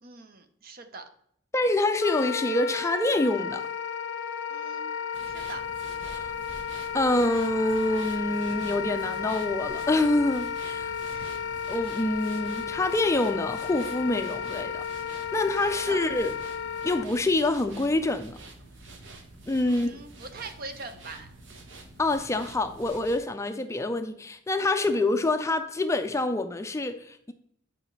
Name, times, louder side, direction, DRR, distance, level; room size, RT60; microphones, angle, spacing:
voice 1, 0.0-1.1 4.5-5.6 11.1-11.3 15.9-16.1 19.6-21.3, right 3 dB, 50° right, 0.7 m, -42 dB
voice 2, 1.5-3.6 6.1-6.3 6.9-10.9 11.7-14.8 15.1-16.3 16.8-18.4 19.5-20.0 22.0-27.3, left 2 dB, 15° left, 0.4 m, -26 dB
Wind instrument woodwind instrument, 2.0-17.1, left 7 dB, 75° left, 0.5 m, -33 dB
sound 1, 5.1-23.2, right 2 dB, 70° right, 1.0 m, -47 dB
8.7 x 4.9 x 3.2 m
head